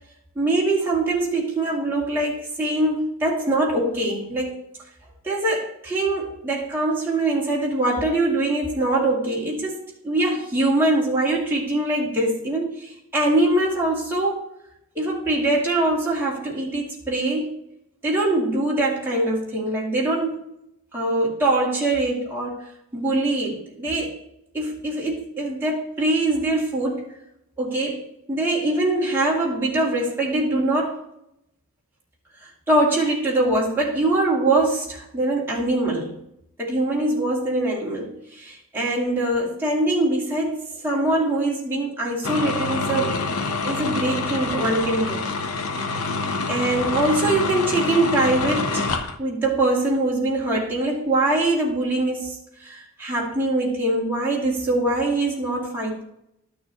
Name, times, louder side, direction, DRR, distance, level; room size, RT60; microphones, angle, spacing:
voice 1, 0.4-4.6 5.2-14.4 14.9-17.5 18.0-20.4 20.9-24.2 24.5-27.1 27.6-28.0 28.3-31.0 32.7-36.2 36.6-43.2 43.6-45.2 46.5-56.0, right 2 dB, 10° right, -6 dB, 2.4 m, -23 dB
sound 1, 42.2-49.2, left 3 dB, 85° left, 0.8 m, -26 dB
12.5 x 6.6 x 2.9 m, 0.80 s
head